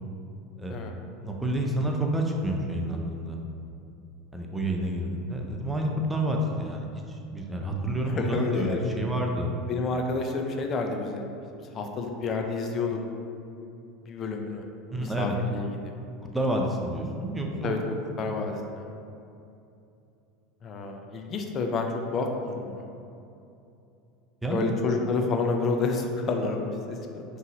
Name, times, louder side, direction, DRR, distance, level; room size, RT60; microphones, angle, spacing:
voice 1, 1.2-3.4 4.3-9.5 14.9-15.4 16.3-17.7 18.2-18.3 24.4-24.7, right 1 dB, 10° right, 0 dB, 0.6 m, -29 dB
voice 2, 8.1-8.8 9.7-11.3 11.5-13.0 14.1-14.6 14.9-15.9 17.6-18.8 20.6-22.9 24.5-27.2, left 4 dB, 40° left, 3 dB, 0.5 m, -29 dB
5.4 x 3.1 x 2.6 m, 2.7 s
hypercardioid pair, 90°, 0 cm